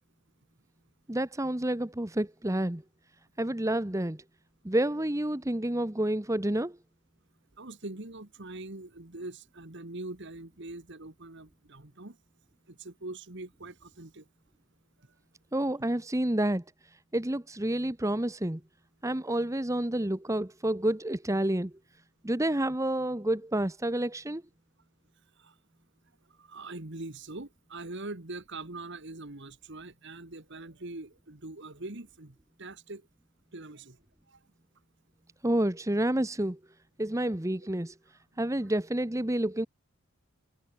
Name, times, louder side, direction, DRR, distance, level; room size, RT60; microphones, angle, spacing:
voice 1, 1.1-2.8 3.4-4.2 4.6-6.8 15.5-16.6 17.1-18.6 19.0-21.7 22.2-24.4 35.4-36.6 37.0-37.9 38.4-39.7, right 1 dB, 15° right, 0.9 m, -29 dB
voice 2, 7.6-12.2 12.7-14.2 25.4-25.5 26.4-33.0 33.5-34.0 34.3-34.4 38.6-38.7, right 2 dB, 55° right, 1.8 m, -43 dB
head